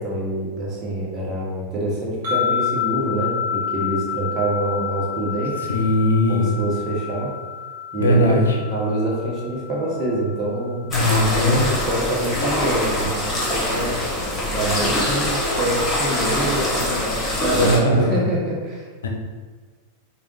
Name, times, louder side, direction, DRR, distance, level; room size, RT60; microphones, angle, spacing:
voice 1, 0.0-5.7 6.3-7.3 7.9-18.8, right 1 dB, 30° right, -5 dB, 1.4 m, -26 dB
sound 1, 2.2-11.5, left 9 dB, 60° right, 1.2 m, -29 dB
voice 2, 5.7-6.5 8.0-8.4 10.9-11.6 17.6-18.2 19.0-19.1, left 1 dB, 65° left, 1 dB, 0.7 m, -18 dB
sound 2, 10.9-17.8, left 1 dB, 15° left, 1.3 m, -23 dB
5.0 x 2.6 x 3.8 m, 1.5 s
figure-of-eight pair, 90°, 0 cm